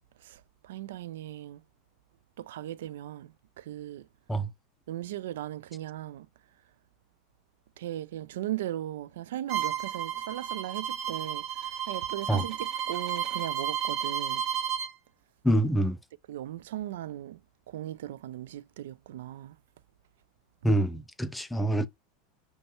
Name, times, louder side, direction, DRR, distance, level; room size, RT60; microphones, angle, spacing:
voice 1, 0.2-1.6 2.4-4.1 4.9-6.3 7.8-14.4 16.3-17.4 17.7-19.6, right 13 dB, 85° right, 0.3 m, -38 dB
Bowed string instrument, 9.5-14.9, right 9 dB, 45° right, 1.2 m, -32 dB
voice 2, 15.4-16.0 20.6-21.9, right 1 dB, 5° left, 0.4 m, -26 dB
5.3 x 2.3 x 2.8 m
supercardioid pair, 125°, 0 cm